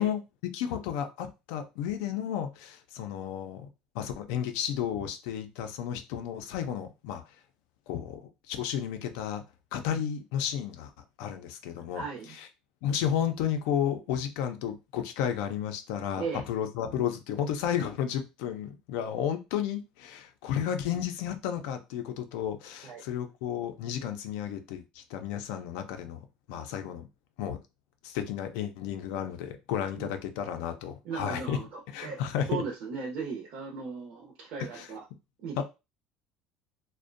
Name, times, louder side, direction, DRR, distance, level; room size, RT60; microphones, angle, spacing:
voice 1, 0.0-3.7 3.9-7.2 7.9-9.4 9.7-10.9 11.2-12.0 12.4-12.5 12.8-26.2 26.5-27.1 27.4-27.6 28.0-31.6 31.9-32.6 34.6-34.9 35.6-35.7, left 9 dB, 75° left, 0.4 m, -32 dB
voice 2, 11.9-12.4 16.2-16.5 22.8-23.0 30.0-30.1 31.0-32.2 32.5-35.1 35.4-35.6, right 5 dB, 50° right, 0.5 m, -37 dB
2.5 x 2.1 x 2.5 m
cardioid pair, 175°, 2 cm